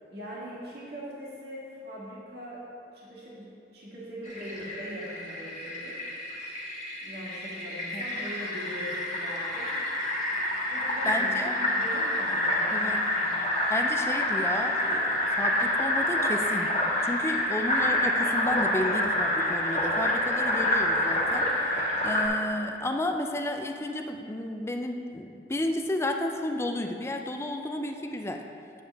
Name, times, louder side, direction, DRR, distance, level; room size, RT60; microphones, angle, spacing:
voice 1, 0.1-2.7 2.9-3.5 3.7-6.0 7.0-9.8 10.7-13.3, equal, 60° right, -7 dB, 1.8 m, -41 dB
Fill (with liquid), 4.2-22.3, left 1 dB, 40° left, 1.3 m, -28 dB
voice 2, 11.0-11.5 12.7-13.1 13.7-16.7 17.0-28.4, left 1 dB, 15° left, 4 dB, 0.4 m, -32 dB
8.4 x 7.1 x 3.4 m, 2.5 s
head